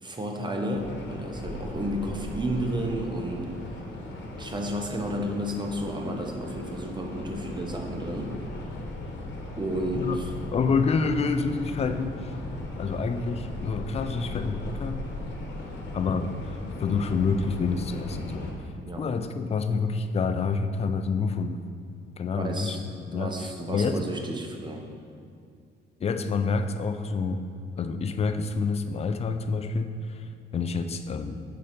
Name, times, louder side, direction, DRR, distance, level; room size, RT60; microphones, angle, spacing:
voice 1, 0.0-3.5 4.4-8.3 9.6-10.3 18.9-19.1 22.4-22.8 23.1-24.8, right 1 dB, 20° right, 2 dB, 0.8 m, -32 dB
sound 1, 0.7-18.5, left 2 dB, 65° left, 1.0 m, -37 dB
voice 2, 10.5-12.3 12.8-15.0 15.9-18.5 19.0-21.6 22.2-22.8 23.1-23.3 23.7-24.0 26.0-27.4 27.8-31.4, left 4 dB, 30° left, 8 dB, 0.4 m, -28 dB
5.7 x 3.8 x 5.0 m, 2.4 s
cardioid pair, 90°, 20 cm